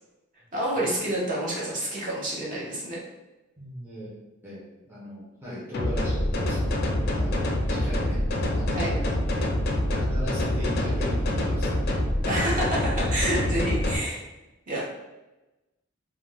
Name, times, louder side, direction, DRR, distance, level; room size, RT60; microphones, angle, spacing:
voice 1, 0.5-3.0 8.7-8.9 12.2-14.2 14.7-14.8, right 1 dB, 40° right, -6 dB, 0.8 m, -28 dB
voice 2, 3.6-4.1 4.4-7.3 7.7-8.2 8.5-8.9 9.6-12.0 12.5-12.7, equal, 10° right, -9 dB, 0.7 m, -38 dB
sound 1, 5.7-13.9, left 1 dB, 50° left, 0.4 m, -26 dB
2.5 x 2.2 x 3.2 m, 1.0 s
head